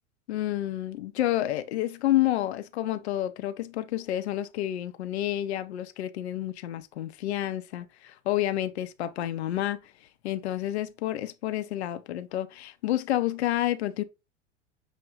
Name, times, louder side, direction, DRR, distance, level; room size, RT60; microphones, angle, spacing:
voice 1, 0.3-9.8 10.2-14.0, left 13 dB, 65° left, 0.6 m, -29 dB
6.3 x 2.1 x 3.7 m
figure-of-eight pair, 90°, 36 cm